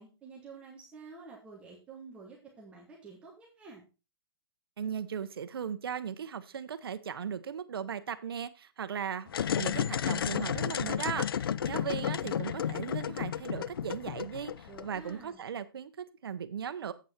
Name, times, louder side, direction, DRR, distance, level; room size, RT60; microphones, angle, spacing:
voice 1, 0.0-3.8 14.7-15.4, right 4 dB, 10° right, -4 dB, 1.5 m, -50 dB
voice 2, 4.8-16.9, right 7 dB, 70° right, 12 dB, 1.1 m, -37 dB
sound 1, 9.3-15.1, left 9 dB, 65° left, 0.5 m, -32 dB
8.2 x 7.6 x 4.4 m, 0.31 s
hypercardioid pair, 170°, 13 cm